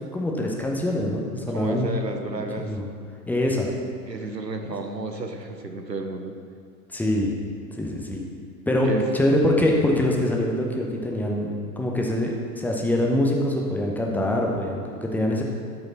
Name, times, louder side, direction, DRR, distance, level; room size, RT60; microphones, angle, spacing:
voice 1, 0.0-1.9 2.4-2.8 3.3-3.7 6.9-7.3 7.8-8.2 8.7-15.4, left 1 dB, 5° left, -1 dB, 0.7 m, -24 dB
voice 2, 1.5-2.7 4.1-6.4 8.8-9.0, right 3 dB, 90° right, 5 dB, 0.9 m, -32 dB
12.5 x 5.0 x 4.0 m, 2.2 s
figure-of-eight pair, 90°, 49 cm